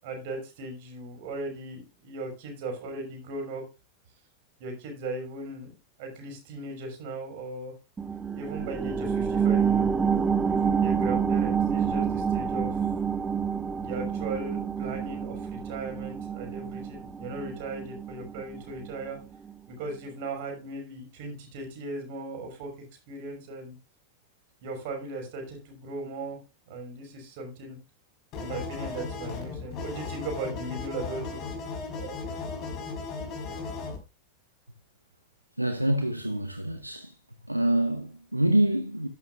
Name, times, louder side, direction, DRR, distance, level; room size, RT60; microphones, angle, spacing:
voice 1, 0.0-3.6 4.6-5.7 6.0-7.7 8.3-12.8 13.8-19.2 19.8-22.7 23.1-23.7 24.6-26.4 26.7-27.8 28.4-31.4 32.0-32.1, right 2 dB, 50° right, 5.9 m, -37 dB
sound 1, 8.0-19.1 19.5-19.6, right 7 dB, 15° right, 1.2 m, -28 dB
sound 2, 28.3-34.0, left 4 dB, 40° left, 4.5 m, -36 dB
voice 2, 35.6-37.2 37.5-39.1, right 1 dB, 85° right, 0.9 m, -26 dB
12.5 x 11.5 x 2.4 m
figure-of-eight pair, 90°, 0 cm